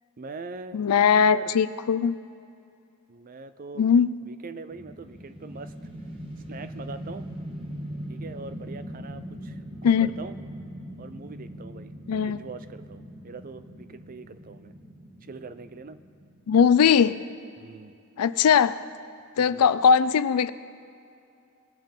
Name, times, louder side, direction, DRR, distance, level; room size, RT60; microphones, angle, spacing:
voice 1, 0.2-0.8 1.1-1.5 3.1-3.8 4.3-5.7 6.5-7.3 8.1-10.4 11.0-11.9 12.2-14.7 15.2-16.0 17.6-17.9 19.4-19.7, right 4 dB, 40° right, 11 dB, 0.4 m, -42 dB
voice 2, 0.7-2.1 3.8-4.1 9.8-10.1 12.1-12.4 16.5-17.2 18.2-18.8 19.4-20.5, left 7 dB, 85° left, 14 dB, 0.4 m, -20 dB
sound 1, 4.7-16.9, equal, 25° right, 1.2 m, -41 dB
20.0 x 7.2 x 3.8 m, 2.5 s
head